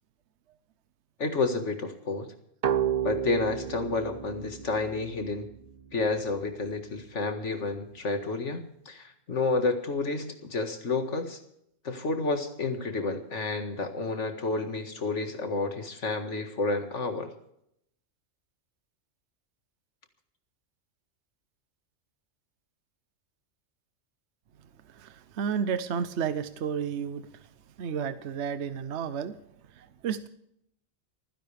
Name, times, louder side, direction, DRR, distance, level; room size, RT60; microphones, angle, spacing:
voice 1, 1.2-2.3 3.0-5.5 5.9-11.4 11.8-17.3, left 3 dB, 65° left, 2.1 m, -30 dB
sound 1, 2.6-6.1, right 9 dB, 45° right, 0.6 m, -32 dB
voice 2, 24.9-27.5 27.8-29.4 29.7-30.3, right 7 dB, 65° right, 1.0 m, -32 dB
29.5 x 10.5 x 3.4 m
omnidirectional pair, 1.3 m